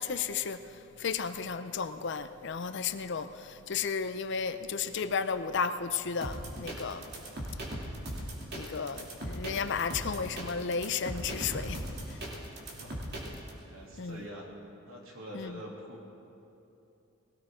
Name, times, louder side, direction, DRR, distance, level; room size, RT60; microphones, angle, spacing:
voice 1, 0.0-7.1 8.5-12.3 14.0-14.2 15.3-15.6, left 6 dB, 60° left, 11 dB, 0.6 m, -34 dB
sound 1, 6.2-13.5, right 1 dB, 50° right, 2.7 m, -39 dB
voice 2, 13.6-14.5 14.8-16.0, equal, 80° right, -3 dB, 3.0 m, -45 dB
20.0 x 17.5 x 3.8 m, 2.8 s
head